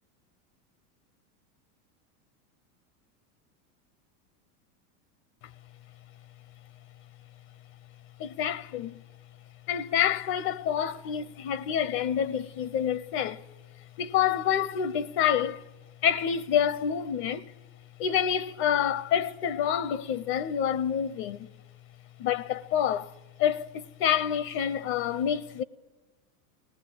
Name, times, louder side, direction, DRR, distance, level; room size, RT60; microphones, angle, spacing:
voice 1, 8.2-9.0 9.7-13.4 14.0-15.6 16.0-17.5 18.0-21.5 22.2-23.1 23.4-25.6, left 9 dB, 50° left, 0.9 m, -27 dB
24.0 x 19.0 x 8.8 m
hypercardioid pair, 115°, 47 cm